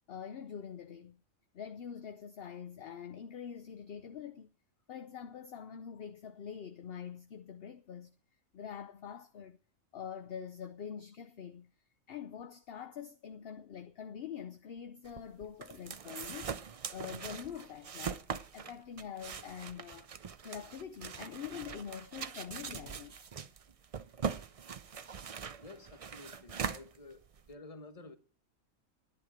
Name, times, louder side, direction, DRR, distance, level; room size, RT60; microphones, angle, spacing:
voice 1, 0.1-1.2 1.5-4.5 4.9-8.2 8.5-9.6 9.9-11.7 12.1-16.6 16.9-20.1 20.4-23.1, left 8 dB, 55° left, 0.7 m, -45 dB
sound 1, 15.0-27.5, right 6 dB, 65° right, 0.3 m, -42 dB
voice 2, 25.6-28.2, left 2 dB, 25° left, 1.2 m, -51 dB
11.0 x 11.0 x 5.0 m
omnidirectional pair, 1.4 m